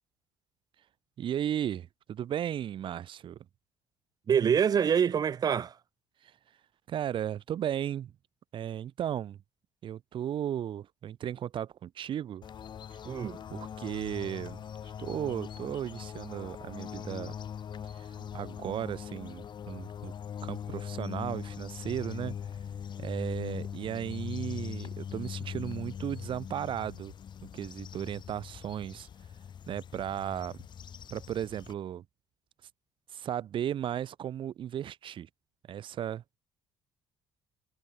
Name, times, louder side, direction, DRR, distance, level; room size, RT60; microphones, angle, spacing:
voice 1, 1.2-3.4 6.9-8.1 8.5-9.4 9.8-12.4 13.5-14.6 15.0-17.3 18.0-18.1 18.3-20.1 20.4-22.3 23.0-27.1 27.5-29.1 29.7-30.6 31.1-32.0 33.1-35.3 35.7-36.2, right 10 dB, 55° right, 3.2 m, -35 dB
voice 2, 4.3-5.8 13.0-13.4, right 8 dB, 40° right, 0.7 m, -25 dB
sound 1, 12.4-31.7, left 8 dB, 50° left, 5.1 m, -41 dB
supercardioid pair, 85°, 10 cm